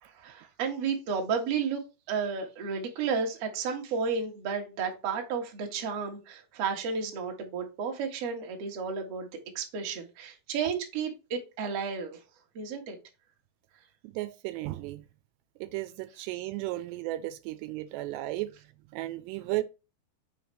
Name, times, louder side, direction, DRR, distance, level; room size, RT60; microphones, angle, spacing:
voice 1, 0.0-1.8 2.1-9.3 9.5-12.2 12.5-13.0, right 5 dB, 55° right, 1.7 m, -32 dB
voice 2, 14.0-15.0 15.6-18.5 18.9-19.6, right 17 dB, 85° right, 2.7 m, -34 dB
6.4 x 5.1 x 3.2 m
omnidirectional pair, 5.0 m